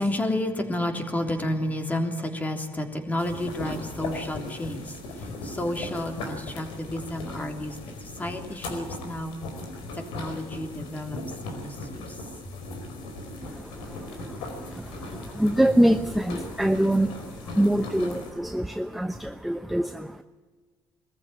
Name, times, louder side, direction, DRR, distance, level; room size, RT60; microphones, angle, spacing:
voice 1, 0.0-9.4 9.9-11.2 11.4-12.2, left 1 dB, 20° left, 5 dB, 3.3 m, -31 dB
sound 1, 3.2-18.3, left 2 dB, 80° left, 4.7 m, -38 dB
voice 2, 13.4-20.2, right 1 dB, ahead, 9 dB, 0.8 m, -25 dB
22.5 x 14.5 x 9.3 m, 1.4 s
cardioid pair, 100°, 9 cm